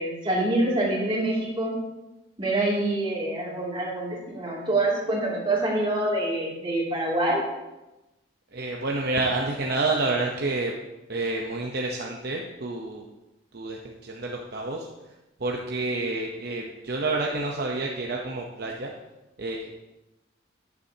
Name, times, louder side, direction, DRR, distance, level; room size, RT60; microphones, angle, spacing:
voice 1, 0.0-1.8 2.4-7.4, right 1 dB, 25° right, -4 dB, 2.7 m, -26 dB
voice 2, 8.5-10.7 11.1-13.1 13.5-14.9 15.4-18.9 19.4-19.8, right 2 dB, 55° right, 0 dB, 0.8 m, -29 dB
11.5 x 9.5 x 2.8 m, 1.0 s
head